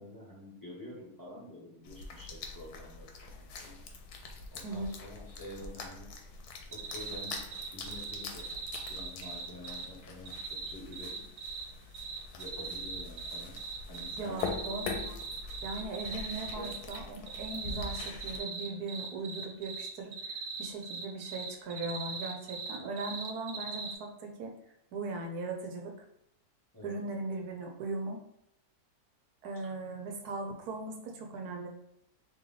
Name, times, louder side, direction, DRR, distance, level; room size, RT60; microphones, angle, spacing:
voice 1, 0.0-3.7 4.5-6.1 6.7-11.1 12.3-13.6 13.9-14.4 16.4-16.7 22.8-22.9 26.7-27.0, left 1 dB, 15° left, -7 dB, 1.2 m, -48 dB
sound 1, 1.8-18.4, left 4 dB, 80° left, 1.2 m, -44 dB
sound 2, 6.7-9.8 10.2-11.6 11.9-17.0 17.3-23.9, right 5 dB, 55° right, 0.7 m, -40 dB
voice 2, 14.2-15.2 15.6-24.5 24.9-25.9 26.8-28.2 29.4-31.7, right 3 dB, 85° right, 2 dB, 1.3 m, -39 dB
3.3 x 3.0 x 3.7 m, 0.80 s
omnidirectional pair, 1.6 m